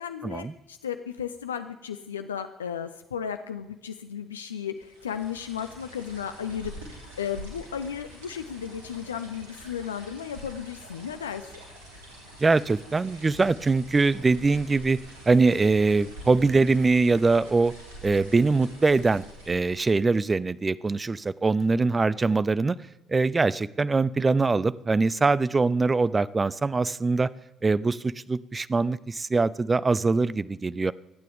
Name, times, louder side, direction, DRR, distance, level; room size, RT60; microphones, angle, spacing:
voice 1, 0.0-11.4, left 8 dB, 80° left, 8 dB, 0.4 m, -35 dB
sound 1, 4.8-20.2, right 1 dB, 75° right, 2.8 m, -46 dB
voice 2, 12.4-15.0 15.3-17.7 18.0-22.8 23.1-27.3 27.6-30.9, right 3 dB, 25° right, 19 dB, 0.5 m, -23 dB
27.5 x 9.1 x 3.5 m, 1.0 s
figure-of-eight pair, 50°, 0 cm